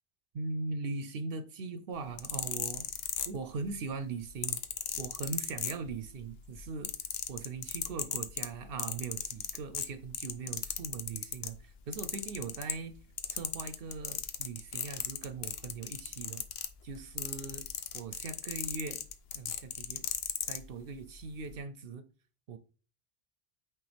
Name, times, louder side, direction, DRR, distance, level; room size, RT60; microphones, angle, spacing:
voice 1, 0.3-2.9 3.3-4.6 5.0-6.9 7.3-13.0 13.3-16.4 16.8-17.6 17.9-19.0 19.3-20.0 20.5-22.0 22.5-22.6, right 4 dB, 70° right, 0.7 m, -40 dB
sound 1, 2.0-3.7 4.4-6.2 6.5-11.5 11.9-12.9 13.2-20.6 21.3-21.5, left 9 dB, 80° left, 0.9 m, -36 dB
8.6 x 3.3 x 3.3 m
omnidirectional pair, 1.0 m